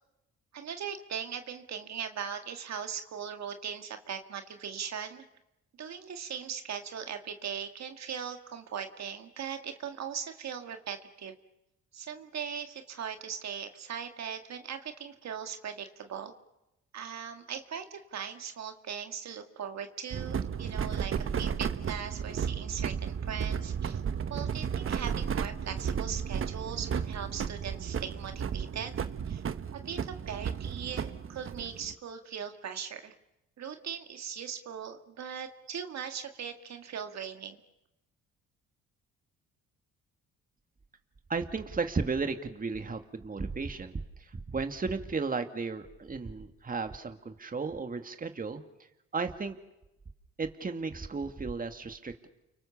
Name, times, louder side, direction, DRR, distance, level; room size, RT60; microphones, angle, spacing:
voice 1, 0.5-5.3 5.8-11.3 11.9-16.3 16.9-24.0 24.3-28.9 29.3-29.4 29.7-33.1 33.6-37.6, right 7 dB, 60° right, 6 dB, 2.1 m, -39 dB
sound 1, 20.1-31.9, right 7 dB, 45° right, 1.2 m, -33 dB
voice 2, 41.3-44.0 44.3-48.6 49.1-49.6 50.4-52.3, right 4 dB, 30° right, 7 dB, 2.1 m, -34 dB
30.0 x 24.5 x 7.2 m, 0.91 s
cardioid pair, 90°, 30 cm